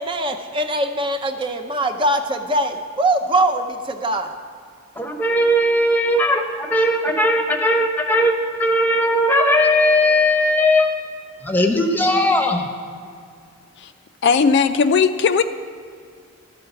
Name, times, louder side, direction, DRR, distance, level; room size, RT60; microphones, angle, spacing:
voice 1, 0.0-4.3, right 1 dB, 25° right, 5 dB, 0.5 m, -22 dB
voice 2, 5.0-10.9 11.4-12.7, left 1 dB, 10° left, 4 dB, 0.8 m, -18 dB
voice 3, 14.2-15.4, left 5 dB, 55° left, 10 dB, 0.3 m, -16 dB
12.5 x 4.7 x 8.0 m, 2.3 s
head